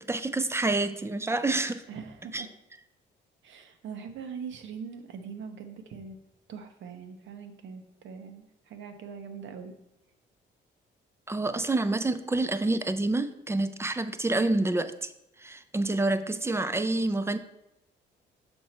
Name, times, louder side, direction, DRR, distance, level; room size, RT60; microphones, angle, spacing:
voice 1, 0.0-1.8 2.3-2.5 11.3-15.1 15.4-17.4, right 2 dB, 15° right, 11 dB, 0.4 m, -28 dB
voice 2, 1.9-2.5 3.4-6.2 6.5-9.7, right 6 dB, 70° right, 7 dB, 0.8 m, -42 dB
6.3 x 4.4 x 4.3 m, 0.86 s
cardioid pair, 90°, 20 cm